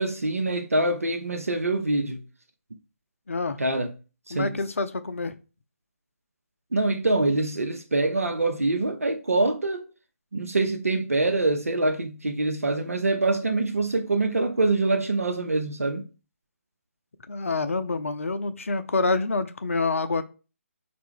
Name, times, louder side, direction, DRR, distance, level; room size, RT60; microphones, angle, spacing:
voice 1, 0.0-2.2 3.6-3.9 4.3-4.5 6.7-9.8 10.3-16.0, right 2 dB, 75° right, 0.6 m, -25 dB
voice 2, 3.3-3.6 4.3-5.3 17.3-20.2, left 3 dB, 65° left, 0.5 m, -27 dB
4.4 x 2.5 x 3.6 m
figure-of-eight pair, 145°, 8 cm